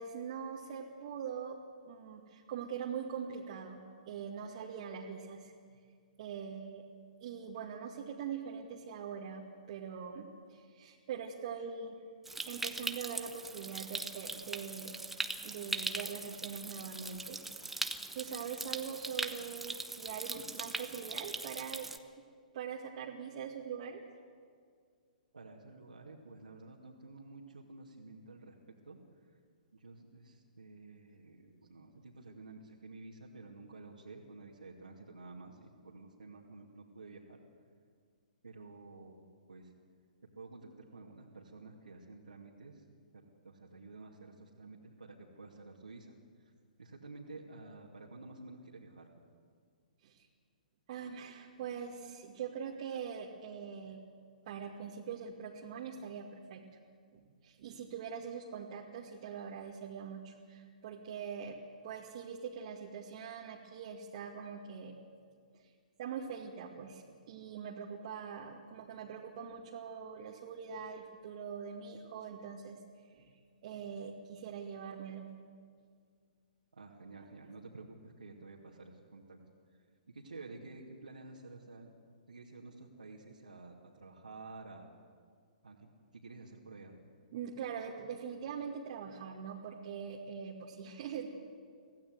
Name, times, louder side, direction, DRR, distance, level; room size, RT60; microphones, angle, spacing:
voice 1, 0.0-1.6 1.8-5.5 6.2-6.8 7.2-12.0 12.5-15.0 15.4-17.4 17.7-17.8 18.1-21.9 22.5-24.0 50.0-50.3 50.9-54.0 54.5-56.7 57.1-61.6 61.8-65.0 65.5-65.7 66.0-72.8 73.1-75.3 87.3-91.3, right 7 dB, 45° right, -3 dB, 2.1 m, -43 dB
Stream, 12.3-22.0, right 2 dB, 5° right, 1.0 m, -40 dB
voice 2, 25.3-28.6 28.8-29.4 29.7-37.4 38.4-39.7 40.3-42.9 43.1-46.5 46.8-49.1 76.7-79.4 79.7-81.9 82.3-84.9 85.6-87.0, right 3 dB, 80° right, -5 dB, 2.5 m, -51 dB
25.0 x 16.0 x 8.0 m, 2.1 s
figure-of-eight pair, 125°, 5 cm